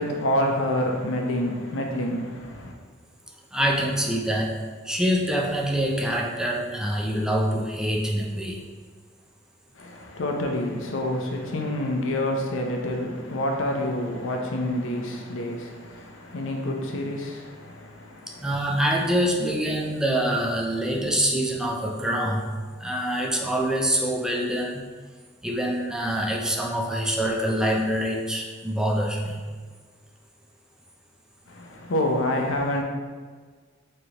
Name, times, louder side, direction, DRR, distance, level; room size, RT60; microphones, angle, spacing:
voice 1, 0.0-2.7 9.8-18.5 31.5-32.8, left 1 dB, 70° left, 0.6 m, -28 dB
voice 2, 3.5-4.5 4.8-8.6 18.4-24.9 25.4-29.4, equal, 5° right, 0.3 m, -25 dB
3.8 x 3.3 x 2.9 m
head